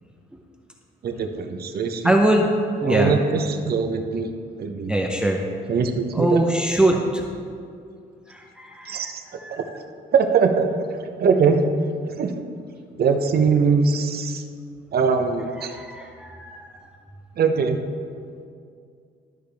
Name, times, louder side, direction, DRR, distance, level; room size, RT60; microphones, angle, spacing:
voice 1, 1.0-2.1 2.8-4.3 4.6-4.9 5.7-6.4 8.9-9.2 9.5-9.6 10.1-10.7 11.2-11.6 12.2-12.4 13.0-14.4 14.9-15.7 17.4-17.8, right 5 dB, 50° right, 6 dB, 0.7 m, -21 dB
voice 2, 2.0-2.5 2.8-3.2 4.9-5.4 6.1-7.2 8.3-9.1 9.4-9.6 15.6-16.9, right 1 dB, 5° right, 1 dB, 0.6 m, -22 dB
12.0 x 4.9 x 3.4 m, 2.3 s
cardioid pair, 90°, 20 cm